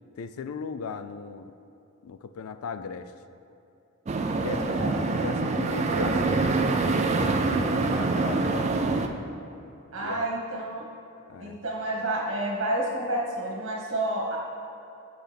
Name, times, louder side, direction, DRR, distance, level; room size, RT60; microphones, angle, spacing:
voice 1, 0.0-1.5 2.0-3.1 4.3-4.8 5.1-8.8 10.0-10.3 11.3-11.6, left 5 dB, 80° left, 10 dB, 0.3 m, -37 dB
sound 1, 4.1-9.1, right 3 dB, 30° right, 0.3 m, -25 dB
voice 2, 4.3-5.0 5.7-6.1 9.9-10.9 11.4-14.4, right 1 dB, 60° right, -3 dB, 1.4 m, -30 dB
7.7 x 6.1 x 3.4 m, 2.9 s
head